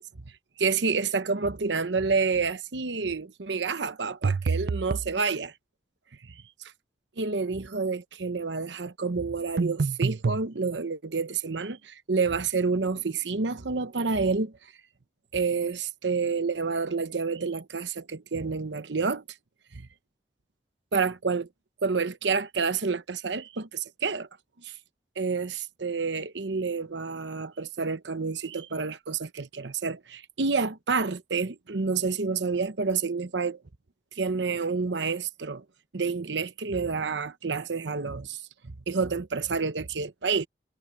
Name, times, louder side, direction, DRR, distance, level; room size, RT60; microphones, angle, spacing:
voice 1, 0.6-5.5 6.3-6.4 7.2-14.5 15.3-19.2 19.7-19.9 20.9-21.5 21.8-24.3 24.6-24.8 25.2-33.6 34.1-35.6 35.9-40.5, right 4 dB, 85° right, 0.9 m, -29 dB
sound 1, 4.2-5.1 9.6-10.4, right 4 dB, 55° right, 0.4 m, -27 dB
head